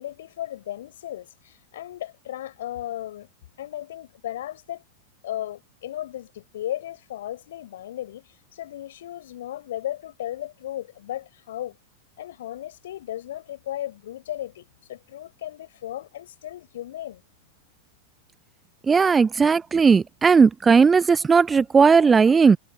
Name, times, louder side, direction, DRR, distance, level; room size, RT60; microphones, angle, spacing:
voice 1, 0.0-3.3 3.6-4.8 5.2-11.8 12.2-17.2, left 12 dB, 60° left, 6.3 m, -35 dB
voice 2, 18.9-22.6, right 5 dB, 15° right, 0.6 m, -17 dB
figure-of-eight pair, 90°, 0 cm